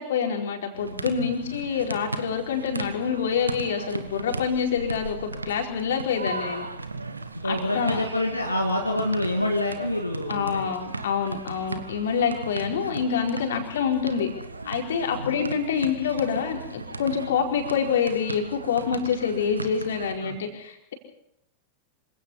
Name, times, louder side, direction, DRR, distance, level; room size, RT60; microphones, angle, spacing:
voice 1, 0.0-6.7 7.5-8.0 10.3-14.3 14.6-20.9, left 7 dB, 60° left, 2 dB, 4.6 m, -26 dB
sound 1, 0.7-20.1, right 3 dB, 80° right, 1.6 m, -37 dB
voice 2, 7.3-10.6 15.1-15.4 20.2-20.4, left 1 dB, 90° left, 0 dB, 2.4 m, -27 dB
26.5 x 17.5 x 5.7 m, 0.76 s
figure-of-eight pair, 90°, 0 cm